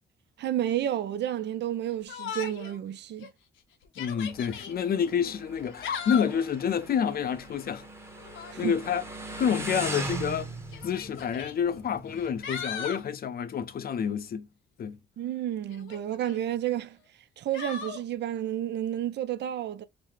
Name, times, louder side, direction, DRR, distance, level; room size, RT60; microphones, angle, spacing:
voice 1, 0.4-3.3 8.5-8.8 15.2-17.0 17.4-19.8, right 11 dB, 60° right, 0.5 m, -31 dB
Yell, 2.1-2.8 3.2-3.3 3.8-4.7 5.6-6.4 8.2-8.6 9.7-9.8 10.7-11.5 12.1-13.0 15.7-16.4 17.5-18.0, left 7 dB, 75° left, 0.9 m, -37 dB
voice 2, 4.0-7.9 8.6-9.0 9.4-10.5 10.8-14.5 14.8-15.0, left 7 dB, 50° left, 0.6 m, -28 dB
Motorcycle, 4.3-12.6, right 1 dB, 10° right, 1.0 m, -40 dB
4.0 x 2.1 x 3.0 m
cardioid pair, 90°, 20 cm